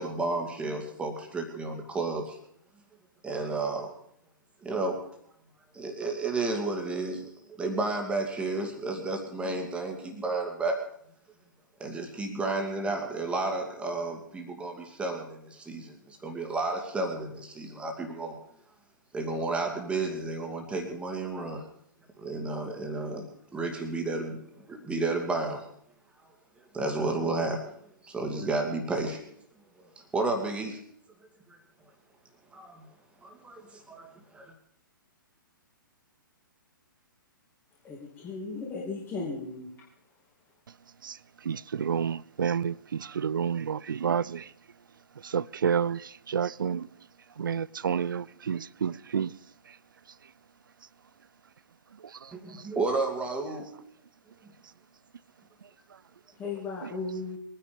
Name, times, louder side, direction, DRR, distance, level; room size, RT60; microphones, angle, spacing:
voice 1, 0.0-2.4 3.2-3.9 4.6-5.0 5.7-7.2 7.6-10.8 11.8-18.4 19.1-21.6 22.2-23.3 23.5-25.6 26.7-27.7 28.0-29.4 30.1-30.8 31.5-31.6 32.5-32.9 33.2-34.1 34.3-34.5 52.3-53.7, right 3 dB, 10° right, 2.4 m, -32 dB
voice 2, 37.8-39.7 56.4-57.4, left 3 dB, 15° left, 2.5 m, -36 dB
voice 3, 41.0-44.5 45.2-46.9 47.4-49.3 49.7-49.8 52.0-52.6 56.8-56.9, right 7 dB, 70° right, 0.5 m, -30 dB
22.0 x 10.0 x 5.2 m
figure-of-eight pair, 120°, 11 cm